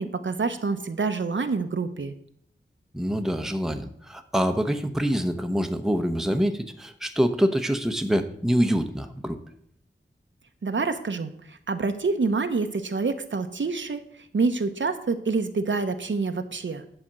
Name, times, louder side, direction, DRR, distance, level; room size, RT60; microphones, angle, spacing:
voice 1, 0.0-2.1 10.6-16.8, right 4 dB, 65° right, 8 dB, 0.9 m, -27 dB
voice 2, 2.9-9.4, equal, ahead, 6 dB, 0.8 m, -25 dB
10.0 x 4.3 x 7.4 m, 0.68 s
wide cardioid pair, 70°, 21 cm